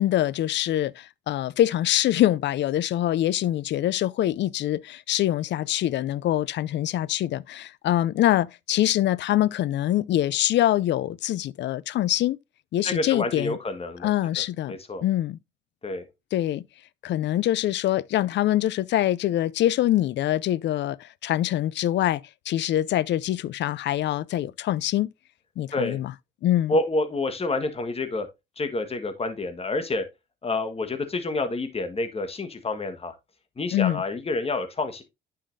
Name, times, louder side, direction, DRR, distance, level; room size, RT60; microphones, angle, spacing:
voice 1, 0.0-12.4 12.7-13.6 14.0-14.7 15.0-15.4 16.3-16.6 17.0-22.2 22.5-25.1 25.6-26.1 26.4-26.8 33.7-34.0, left 13 dB, 65° left, 0.4 m, -24 dB
voice 2, 12.8-14.1 14.4-15.0 15.8-16.1 25.7-26.0 26.7-28.3 28.6-30.0 30.4-33.1 33.6-35.0, left 2 dB, 30° left, 1.5 m, -28 dB
10.0 x 5.7 x 2.6 m
cardioid pair, 90°, 20 cm